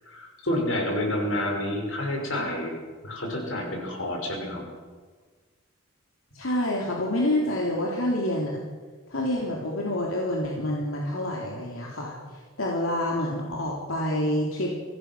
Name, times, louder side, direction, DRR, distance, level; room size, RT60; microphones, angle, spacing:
voice 1, 0.1-2.7 3.0-4.6, left 1 dB, 70° left, 1 dB, 6.2 m, -29 dB
voice 2, 6.3-8.6 9.1-14.8, left 1 dB, 90° left, -2 dB, 3.6 m, -27 dB
25.0 x 18.0 x 6.3 m, 1.4 s
head